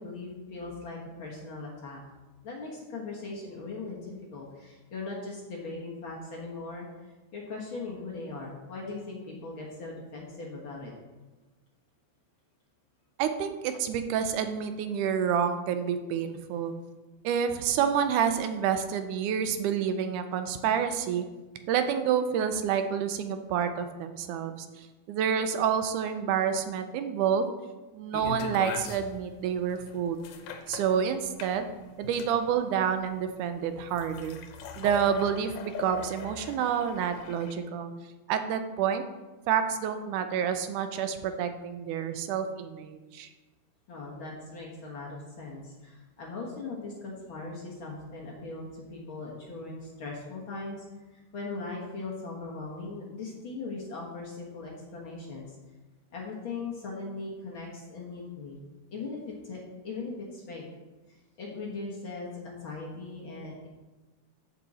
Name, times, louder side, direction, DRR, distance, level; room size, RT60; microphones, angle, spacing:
voice 1, 0.0-2.0 2.4-6.9 7.3-10.9 43.9-50.8 51.1-55.4 56.1-58.6 58.9-60.6 61.1-63.7, left 3 dB, 50° left, -3 dB, 1.7 m, -39 dB
voice 2, 13.2-16.7 17.2-21.3 21.7-27.5 27.9-30.2 30.7-31.7 32.0-34.4 34.8-37.9 38.3-39.0 39.5-43.3, right 8 dB, 80° right, 8 dB, 2.1 m, -28 dB
sound 1, 28.1-37.5, left 5 dB, 90° left, 2.4 m, -40 dB
13.5 x 5.6 x 4.2 m, 1.2 s
omnidirectional pair, 3.6 m